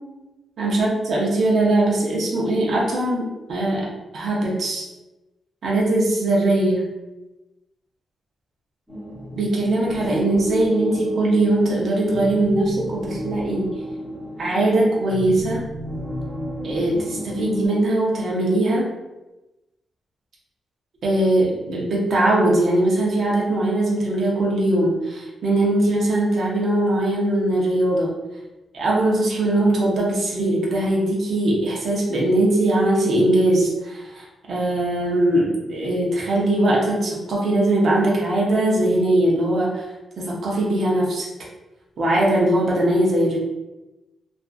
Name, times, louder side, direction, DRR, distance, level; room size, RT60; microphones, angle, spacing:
voice 1, 0.6-4.8 5.6-6.9 9.4-13.8 14.4-15.6 16.6-18.9 21.0-28.2 28.7-39.8 40.2-41.3 42.0-43.4, right 1 dB, 60° right, -3 dB, 0.7 m, -20 dB
sound 1, 8.9-17.7, equal, 10° right, 1.2 m, -32 dB
2.4 x 2.3 x 2.3 m, 1.0 s
cardioid pair, 115°, 0 cm